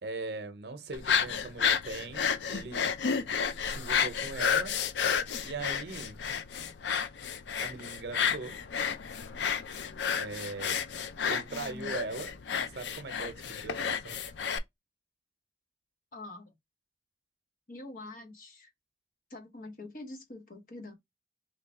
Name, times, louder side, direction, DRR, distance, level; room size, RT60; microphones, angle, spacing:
voice 1, 0.0-2.9 3.6-4.8 5.4-6.2 7.6-8.6 10.2-10.9 11.3-12.3 12.6-14.2, right 3 dB, 70° right, 0.7 m, -40 dB
sound 1, 0.9-14.6, left 7 dB, 80° left, 0.4 m, -31 dB
voice 2, 11.5-12.0 16.1-16.5 17.7-18.7 19.3-20.9, left 2 dB, 50° left, 1.0 m, -45 dB
3.2 x 2.3 x 4.0 m
head